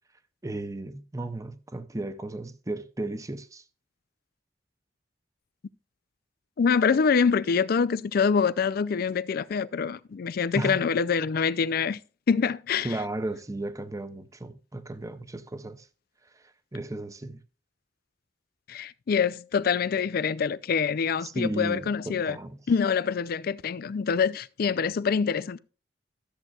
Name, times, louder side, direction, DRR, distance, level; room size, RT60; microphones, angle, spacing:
voice 1, 0.4-3.6 10.5-10.9 12.8-15.9 16.3-16.4 16.7-17.4 21.2-22.6, right 1 dB, 20° right, 0.6 m, -34 dB
voice 2, 6.6-12.0 12.3-12.9 18.7-22.4 22.7-25.6, left 6 dB, 55° left, 0.4 m, -25 dB
13.0 x 7.7 x 2.4 m
head